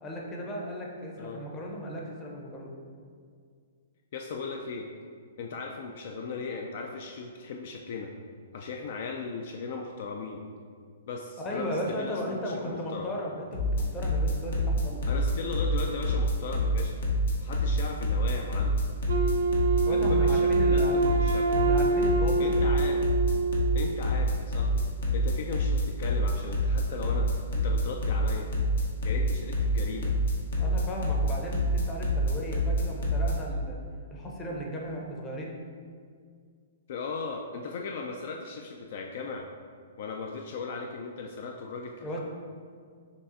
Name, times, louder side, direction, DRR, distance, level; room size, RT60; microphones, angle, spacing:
voice 1, 0.0-2.7 11.4-15.0 19.9-21.1 21.5-22.7 30.6-33.8 34.1-35.6 42.0-42.2, equal, 20° left, -1 dB, 0.7 m, -36 dB
voice 2, 4.1-4.9 5.4-8.1 8.5-10.4 11.1-13.1 15.1-17.0 17.4-18.8 19.9-21.5 22.4-23.0 23.7-24.8 25.1-28.5 29.0-30.1 36.9-39.5 40.0-42.2, left 4 dB, 55° left, 2 dB, 0.3 m, -37 dB
sound 1, 13.5-33.4, equal, 75° left, 0.9 m, -26 dB
Wind instrument woodwind instrument, 19.1-24.1, right 3 dB, 75° right, 0.3 m, -26 dB
6.5 x 2.4 x 2.6 m, 2.1 s
hypercardioid pair, 140°, 0 cm